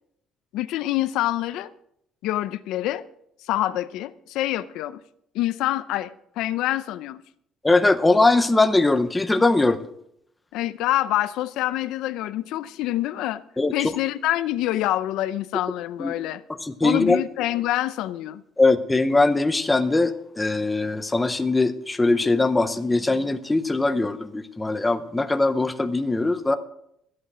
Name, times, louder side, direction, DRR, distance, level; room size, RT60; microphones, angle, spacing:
voice 1, 0.5-1.7 2.2-3.0 3.5-5.0 5.3-7.2 10.5-13.4 13.7-16.4 16.8-18.4, left 14 dB, 80° left, 0.6 m, -26 dB
voice 2, 7.6-9.8 13.6-13.7 16.0-16.1 16.6-17.2 18.6-26.6, left 2 dB, 10° left, 0.7 m, -21 dB
14.0 x 8.4 x 6.2 m
cardioid pair, 170°, 0 cm